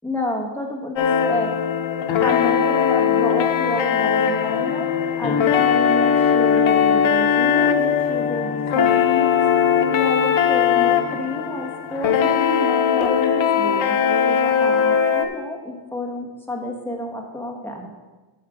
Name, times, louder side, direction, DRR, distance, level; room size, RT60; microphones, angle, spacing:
voice 1, 0.0-1.6 2.2-4.9 5.2-9.3 9.9-17.9, left 1 dB, 5° left, 0 dB, 1.4 m, -30 dB
sound 1, 1.0-15.2, left 7 dB, 75° left, 0.9 m, -19 dB
8.4 x 7.6 x 5.0 m, 1.2 s
wide cardioid pair, 155°, 46 cm